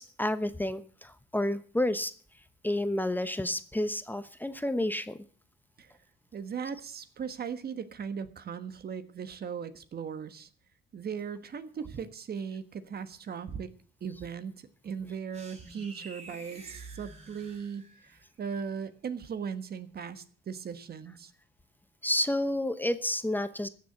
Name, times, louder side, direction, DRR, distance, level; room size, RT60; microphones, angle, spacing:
voice 1, 0.0-2.1 2.6-5.2 22.0-23.7, left 1 dB, 10° left, 11 dB, 1.0 m, -30 dB
voice 2, 6.3-10.5 10.9-13.7 14.0-21.3, right 7 dB, 50° right, 12 dB, 1.4 m, -38 dB
sound 1, 15.3-18.2, right 3 dB, 35° right, 5.9 m, -49 dB
15.0 x 7.0 x 7.8 m, 0.43 s
cardioid pair, 90°, 20 cm